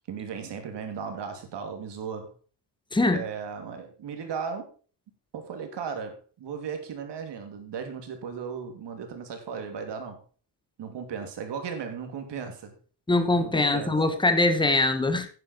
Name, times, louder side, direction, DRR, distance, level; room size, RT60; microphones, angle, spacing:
voice 1, 0.1-2.3 3.1-4.7 5.3-10.2 10.8-12.8 13.4-14.0, right 6 dB, 75° right, 6 dB, 2.8 m, -36 dB
voice 2, 2.9-3.2 13.1-15.4, left 2 dB, 10° left, 9 dB, 1.1 m, -23 dB
10.0 x 9.9 x 4.4 m, 0.38 s
wide cardioid pair, 170°, 43 cm